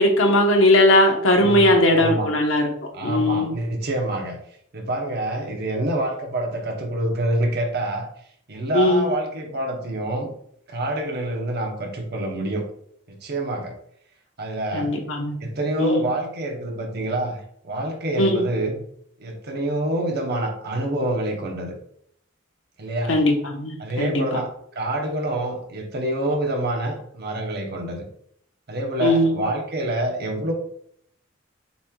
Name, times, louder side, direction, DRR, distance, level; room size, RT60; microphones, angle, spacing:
voice 1, 0.0-2.7 3.0-3.5 8.7-9.1 14.7-15.4 15.8-16.0 18.2-18.5 23.1-24.2 29.0-29.3, left 1 dB, 70° left, 2 dB, 1.0 m, -18 dB
voice 2, 1.4-2.3 2.9-4.4 4.7-8.1 8.5-10.3 10.7-12.6 13.1-13.7 14.4-14.9 15.4-17.4 17.6-18.8 19.2-21.7 22.8-23.2 23.8-24.5 24.8-28.0 28.7-30.5, right 1 dB, 55° right, 2 dB, 0.9 m, -26 dB
6.9 x 3.1 x 2.3 m, 0.68 s
head